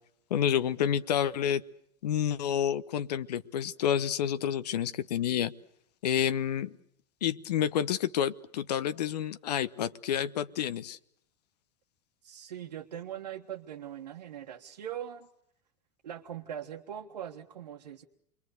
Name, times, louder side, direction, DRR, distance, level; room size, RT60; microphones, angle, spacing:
voice 1, 0.3-1.6 2.0-5.5 6.0-6.7 7.2-11.0, left 9 dB, 75° left, 13 dB, 1.1 m, -29 dB
voice 2, 12.2-15.3 16.0-18.0, right 10 dB, 80° right, 0 dB, 1.5 m, -41 dB
28.5 x 22.5 x 6.6 m, 0.73 s
hypercardioid pair, 85°, 21 cm